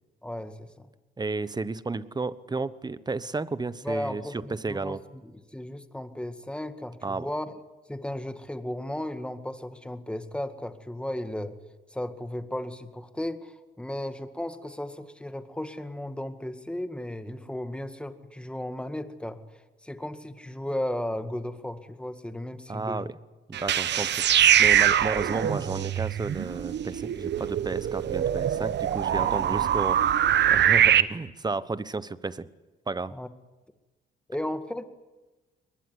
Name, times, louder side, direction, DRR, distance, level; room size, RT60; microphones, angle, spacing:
voice 1, 0.2-0.9 3.8-5.0 5.2-7.6 7.9-11.6 11.9-19.4 19.8-23.1 29.2-29.6 33.1-33.3 34.3-34.8, left 1 dB, 5° left, 9 dB, 1.9 m, -35 dB
voice 2, 1.2-5.0 7.0-7.3 22.7-23.1 23.5-24.1 24.6-30.0 30.5-32.5 32.9-33.1, right 3 dB, 20° right, 16 dB, 1.1 m, -32 dB
sound 1, 23.5-31.0, right 10 dB, 60° right, 1.0 m, -23 dB
22.5 x 20.5 x 9.7 m, 1.2 s
cardioid pair, 90°, 20 cm